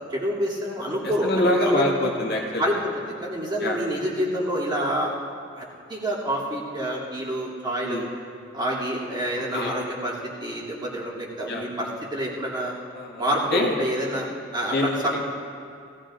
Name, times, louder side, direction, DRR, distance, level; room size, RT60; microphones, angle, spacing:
voice 1, 0.0-1.3 1.6-1.8 2.6-5.1 5.5-8.1 8.5-10.1 10.4-12.7 13.2-15.2, equal, 25° right, -7 dB, 2.7 m, -27 dB
voice 2, 1.2-2.6 3.6-3.8 7.8-8.1 9.5-9.7 11.5-11.6 12.9-13.2 13.5-13.8 14.7-15.1, left 1 dB, 60° left, -2 dB, 1.8 m, -24 dB
18.5 x 17.0 x 2.5 m, 2.3 s
head